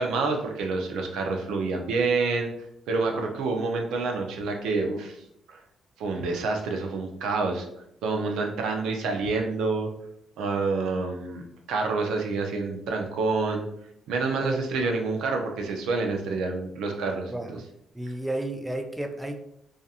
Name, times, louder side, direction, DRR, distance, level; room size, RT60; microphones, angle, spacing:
voice 1, 0.0-2.5 2.9-5.6 6.0-7.7 8.0-9.9 10.4-13.7 14.1-17.3, right 3 dB, 85° right, 2 dB, 0.5 m, -28 dB
voice 2, 17.3-17.7 17.9-19.4, right 1 dB, 10° right, 5 dB, 0.3 m, -32 dB
2.7 x 2.4 x 2.4 m, 0.77 s
cardioid pair, 90°, 0 cm